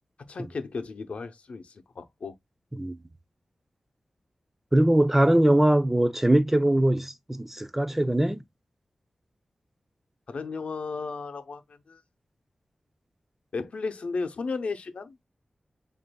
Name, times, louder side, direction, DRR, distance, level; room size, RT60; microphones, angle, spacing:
voice 1, 0.2-2.3 10.3-12.0 13.5-15.2, left 4 dB, 70° left, 0.7 m, -34 dB
voice 2, 4.7-8.4, right 1 dB, 10° right, 0.5 m, -22 dB
7.7 x 2.6 x 2.2 m
wide cardioid pair, 125°, 2 cm